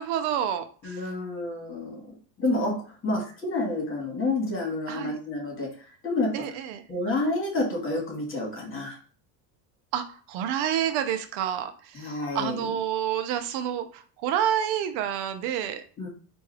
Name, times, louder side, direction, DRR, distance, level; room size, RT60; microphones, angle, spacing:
voice 1, 0.0-1.0 4.9-5.2 6.3-6.8 9.9-15.8, right 9 dB, 70° right, 9 dB, 0.7 m, -29 dB
voice 2, 0.8-2.0 2.4-2.7 3.0-5.7 6.0-6.3 6.9-8.9 12.0-12.6 16.0-16.1, left 2 dB, 30° left, 0 dB, 1.9 m, -29 dB
4.4 x 2.6 x 3.4 m, 0.41 s
supercardioid pair, 110°, 41 cm